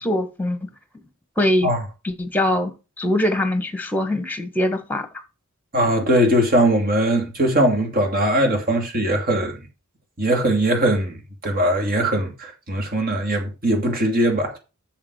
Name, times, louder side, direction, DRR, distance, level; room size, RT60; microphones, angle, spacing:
voice 1, 0.0-0.6 1.4-1.7 2.0-5.1, left 1 dB, 10° left, 1.5 m, -22 dB
voice 2, 5.7-9.6 10.2-14.6, right 1 dB, 45° right, 2.7 m, -20 dB
7.4 x 7.2 x 6.4 m
head